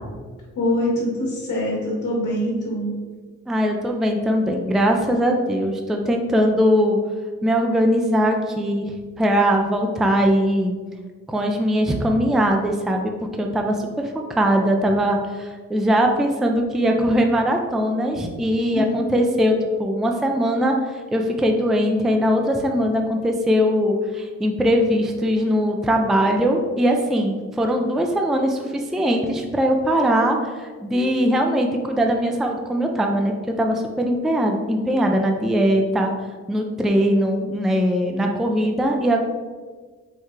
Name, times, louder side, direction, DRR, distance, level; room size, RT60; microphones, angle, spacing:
voice 1, 0.5-2.9 18.7-19.1, left 1 dB, 75° left, -4 dB, 1.5 m, -24 dB
voice 2, 3.5-7.0 7.4-10.8 11.3-13.1 13.4-36.1 36.5-39.2, equal, ahead, 2 dB, 0.4 m, -21 dB
4.6 x 2.3 x 4.6 m, 1.4 s
cardioid pair, 90°, 30 cm